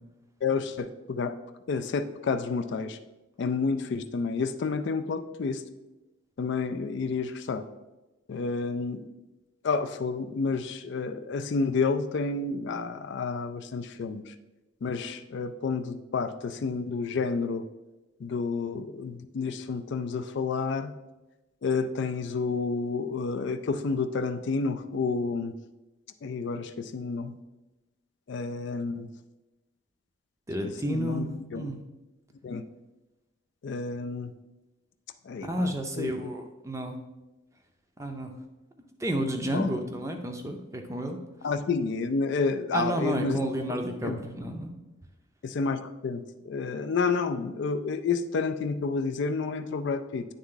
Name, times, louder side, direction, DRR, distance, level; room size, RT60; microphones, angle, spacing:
voice 1, 0.4-1.3 1.7-3.0 3.4-5.6 6.4-7.6 8.3-9.0 9.6-14.2 14.8-17.6 18.2-20.9 21.6-25.5 26.2-27.3 28.3-29.1 30.9-31.6 32.4-32.6 33.6-34.3 35.3-35.5 36.0-36.1 39.5-39.7 41.4-43.4 44.0-44.2 45.4-50.2, left 4 dB, 55° left, 10 dB, 0.3 m, -30 dB
voice 2, 30.5-31.8 35.4-37.0 38.0-38.3 39.0-41.2 42.7-44.7, right 1 dB, 15° right, 4 dB, 0.5 m, -31 dB
9.7 x 3.5 x 3.8 m, 1.1 s
head